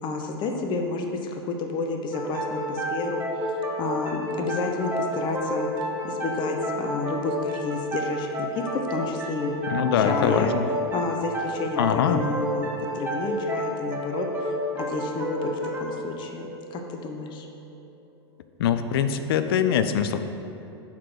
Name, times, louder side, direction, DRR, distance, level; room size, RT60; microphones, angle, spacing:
voice 1, 0.0-3.2 3.8-5.7 6.0-8.6 8.9-9.5 10.0-10.5 10.9-17.5, left 3 dB, 35° left, 4 dB, 0.8 m, -30 dB
sound 1, 2.1-17.5, equal, 15° right, 1.5 m, -31 dB
voice 2, 9.7-10.7 11.8-12.2 18.6-20.3, left 8 dB, 65° left, 9 dB, 0.5 m, -23 dB
7.3 x 3.9 x 6.4 m, 2.7 s
hypercardioid pair, 100°, 14 cm